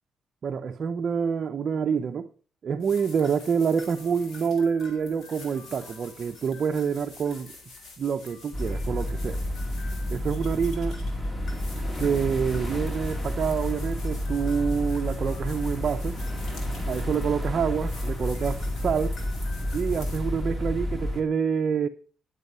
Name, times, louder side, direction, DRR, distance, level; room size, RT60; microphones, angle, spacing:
voice 1, 0.4-2.3 2.6-7.5 8.0-9.4 9.8-11.0 12.0-16.2 16.9-19.2 19.7-21.9, right 6 dB, 50° right, 0.6 m, -27 dB
sound 1, 2.8-20.2, left 3 dB, 55° left, 4.2 m, -46 dB
sound 2, 8.5-21.2, left 1 dB, 20° left, 2.7 m, -30 dB
11.0 x 8.1 x 5.4 m
cardioid pair, 90°, 0 cm